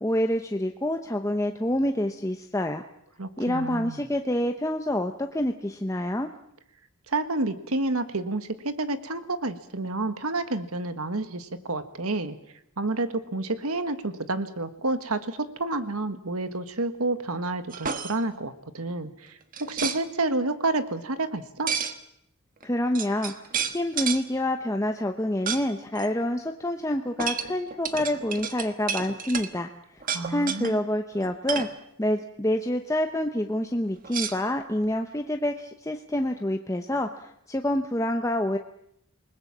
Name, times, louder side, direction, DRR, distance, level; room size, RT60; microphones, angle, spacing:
voice 1, 0.0-2.8 3.4-6.3 22.6-23.3 23.7-29.7 30.3-31.7 32.0-38.6, left 1 dB, 15° left, 5 dB, 0.9 m, -27 dB
voice 2, 3.2-4.0 7.1-12.4 12.8-21.7 30.1-30.8, right 2 dB, 85° right, 11 dB, 1.7 m, -29 dB
sound 1, 17.7-18.2 19.5-20.0 21.7-22.0 22.6-22.7 22.9-24.2 25.5-25.6 25.9-26.1 27.2-29.5 30.0-30.7 31.2-31.7 34.0-34.9, right 7 dB, 40° right, 1.4 m, -31 dB
28.5 x 20.0 x 7.4 m, 0.75 s
head